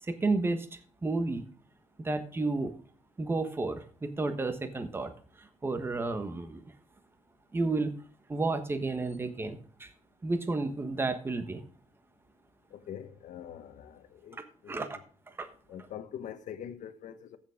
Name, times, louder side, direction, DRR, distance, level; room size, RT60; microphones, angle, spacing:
voice 1, 0.1-1.4 2.0-2.7 3.2-5.1 5.4-6.6 7.5-7.9 8.3-9.9 10.2-11.6 14.7-14.9 15.4-15.5, right 3 dB, 20° right, 1.2 m, -31 dB
voice 2, 12.7-14.4 14.6-14.9 15.7-17.4, left 9 dB, 80° left, 1.2 m, -43 dB
15.0 x 7.0 x 3.6 m
cardioid pair, 160°, 13 cm